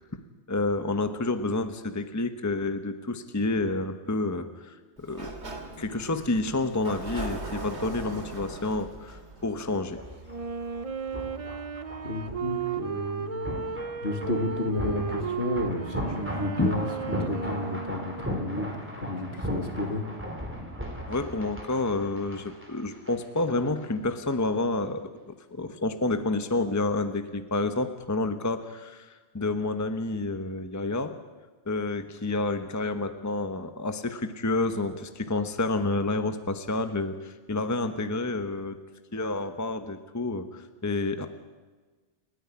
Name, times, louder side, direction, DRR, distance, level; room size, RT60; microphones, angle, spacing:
voice 1, 0.5-5.3 5.8-10.0 16.6-16.7 21.1-25.0 25.3-31.2 31.7-38.8 39.1-41.3, left 2 dB, 15° left, 8 dB, 1.0 m, -29 dB
Sliding door, 5.0-10.6, right 2 dB, 70° right, 2.9 m, -40 dB
sound 1, 9.6-23.4 23.7-23.8, equal, 10° right, 3.6 m, -37 dB
Wind instrument woodwind instrument, 10.3-18.8, right 6 dB, 35° right, 0.7 m, -35 dB
voice 2, 12.0-13.6 14.0-20.1, left 2 dB, 60° left, 5 dB, 2.4 m, -32 dB
29.5 x 10.0 x 9.9 m, 1.3 s
omnidirectional pair, 1.2 m